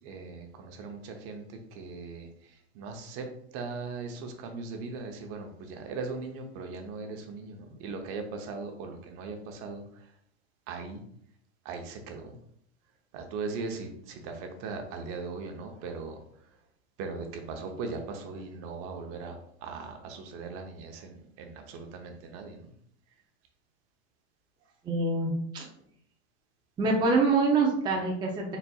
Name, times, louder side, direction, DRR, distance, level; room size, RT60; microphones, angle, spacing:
voice 1, 0.0-3.3 3.5-10.1 10.7-11.0 11.6-12.4 13.1-16.2 17.0-19.4 19.6-22.7, right 4 dB, 45° right, 4 dB, 0.8 m, -39 dB
voice 2, 24.8-25.7 26.8-28.6, right 3 dB, 15° right, -1 dB, 0.5 m, -25 dB
4.2 x 4.1 x 2.3 m, 0.70 s
supercardioid pair, 135°, 34 cm